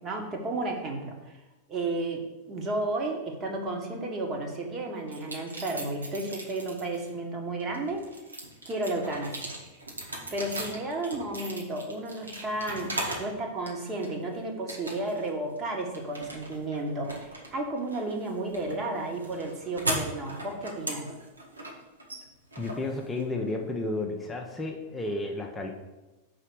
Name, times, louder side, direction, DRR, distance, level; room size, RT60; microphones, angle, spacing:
voice 1, 0.0-1.4 1.7-8.0 8.6-9.5 10.3-21.1, right 2 dB, 25° right, 2 dB, 1.6 m, -33 dB
sound 1, 5.1-7.1 7.6-13.3 13.7-14.3 14.7-15.3 15.6-23.5, right 1 dB, 80° right, 1.4 m, -38 dB
voice 2, 22.6-25.7, left 2 dB, 15° left, 0 dB, 0.9 m, -32 dB
5.6 x 5.0 x 6.4 m, 1.1 s
figure-of-eight pair, 90°, 0 cm